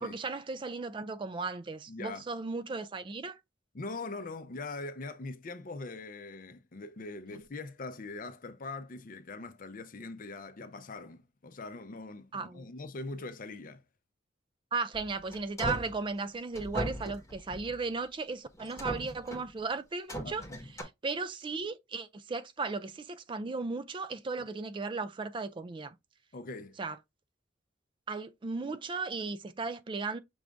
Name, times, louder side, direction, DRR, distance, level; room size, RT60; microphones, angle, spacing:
voice 1, 0.0-3.4 12.3-12.7 14.7-20.4 20.8-25.9 26.8-27.0 28.1-30.2, right 4 dB, 25° right, 0.4 m, -36 dB
voice 2, 1.9-2.2 3.7-13.8 20.2-20.6 26.3-26.8, left 3 dB, 50° left, 0.6 m, -42 dB
sound 1, 14.9-16.0 16.5-17.8 18.5-19.5 20.1-20.8, right 1 dB, 15° left, 1.1 m, -38 dB
6.1 x 2.6 x 3.4 m
head